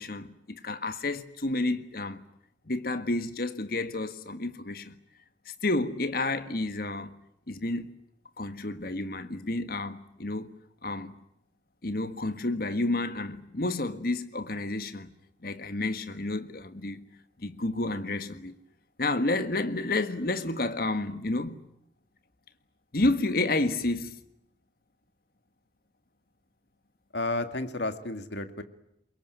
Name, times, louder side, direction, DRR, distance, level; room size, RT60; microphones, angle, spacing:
voice 1, 0.0-2.2 2.7-5.0 5.5-7.2 7.5-8.0 8.4-10.5 10.8-11.1 11.8-15.1 15.4-17.0 17.4-18.6 19.0-21.6 22.9-24.2, left 2 dB, 55° left, 1.6 m, -30 dB
voice 2, 27.1-28.6, left 2 dB, 80° left, 2.0 m, -32 dB
24.0 x 22.0 x 9.2 m
head